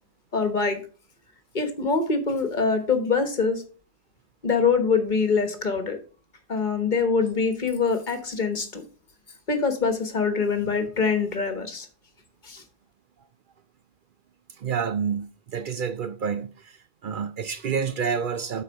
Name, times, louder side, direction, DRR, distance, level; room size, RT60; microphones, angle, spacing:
voice 1, 0.3-0.8 1.5-3.6 4.4-6.0 6.5-8.8 9.5-11.9 12.4-12.6, left 5 dB, 50° left, 1.3 m, -24 dB
voice 2, 14.6-16.5 17.0-18.6, right 6 dB, 60° right, 0.7 m, -28 dB
8.0 x 4.4 x 5.1 m
omnidirectional pair, 1.1 m